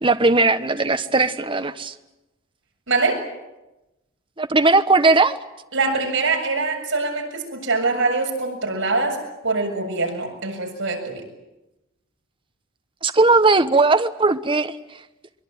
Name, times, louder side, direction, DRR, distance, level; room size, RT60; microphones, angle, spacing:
voice 1, 0.0-1.9 4.4-5.4 13.0-14.8, right 3 dB, 25° right, 1.1 m, -18 dB
voice 2, 2.9-3.2 5.7-11.2, right 3 dB, 65° right, 7.3 m, -23 dB
23.5 x 23.0 x 9.2 m
head